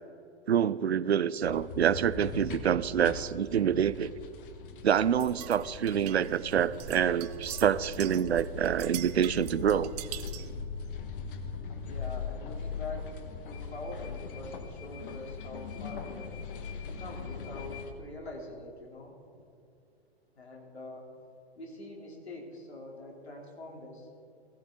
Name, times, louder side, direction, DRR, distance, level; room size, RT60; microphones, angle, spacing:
voice 1, 0.5-4.1 4.8-9.9, right 9 dB, 80° right, 18 dB, 0.5 m, -27 dB
sound 1, 1.4-17.9, left 5 dB, 55° left, 1.5 m, -40 dB
sound 2, 5.2-10.5, right 11 dB, 40° right, 0.7 m, -43 dB
voice 2, 11.8-13.2 13.4-16.3 17.0-19.2 20.3-21.1 21.5-24.1, left 2 dB, 80° left, -1 dB, 3.4 m, -44 dB
16.5 x 15.0 x 3.9 m, 2.5 s
figure-of-eight pair, 110°, 32 cm